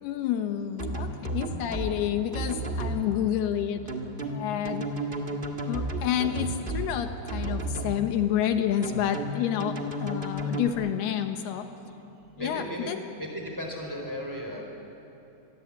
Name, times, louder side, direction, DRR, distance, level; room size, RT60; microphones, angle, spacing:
voice 1, 0.0-3.8 4.3-4.9 5.6-11.7 12.4-13.0, left 10 dB, 75° left, 7 dB, 2.9 m, -29 dB
sound 1, 0.8-1.9 2.3-3.0 3.9-6.9 7.3-7.9 8.8-10.7, right 1 dB, 40° right, 0.7 m, -32 dB
voice 2, 12.4-12.9 13.2-14.6, equal, 5° right, 1 dB, 3.3 m, -35 dB
27.0 x 21.5 x 8.5 m, 3.0 s
omnidirectional pair, 4.7 m